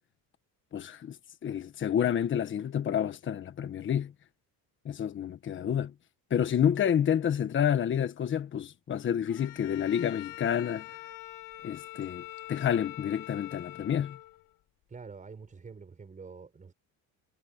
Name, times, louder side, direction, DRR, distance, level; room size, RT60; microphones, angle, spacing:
voice 1, 0.7-1.2 1.4-4.1 4.8-5.9 6.3-10.8 11.6-14.2, left 9 dB, 35° left, 1.4 m, -29 dB
Bowed string instrument, 9.3-14.5, left 17 dB, 70° left, 7.1 m, -45 dB
voice 2, 14.9-16.7, right 5 dB, 20° right, 5.8 m, -46 dB
cardioid pair, 150°, 36 cm